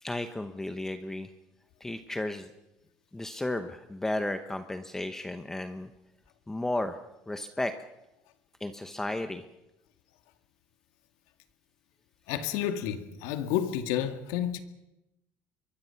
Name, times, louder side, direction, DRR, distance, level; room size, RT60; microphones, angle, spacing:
voice 1, 0.0-1.3 1.8-2.5 3.1-5.9 6.5-7.0 7.3-7.7 8.6-9.4, left 1 dB, 10° left, 1.0 m, -33 dB
voice 2, 12.3-14.6, left 10 dB, 80° left, 2.2 m, -30 dB
25.0 x 23.0 x 5.9 m
cardioid pair, 150°, 6 cm